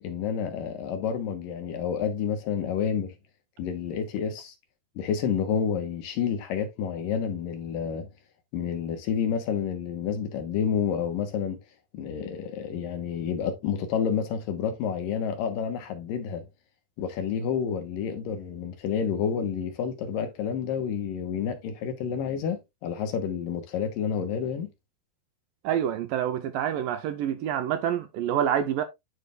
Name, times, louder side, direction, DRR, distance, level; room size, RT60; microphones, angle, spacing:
voice 1, 0.0-3.1 3.6-4.5 5.0-8.1 8.5-11.6 11.9-16.5 17.0-24.7, left 7 dB, 70° left, 2.6 m, -29 dB
voice 2, 25.6-28.8, right 10 dB, 75° right, 2.2 m, -27 dB
11.5 x 4.9 x 2.4 m
omnidirectional pair, 4.4 m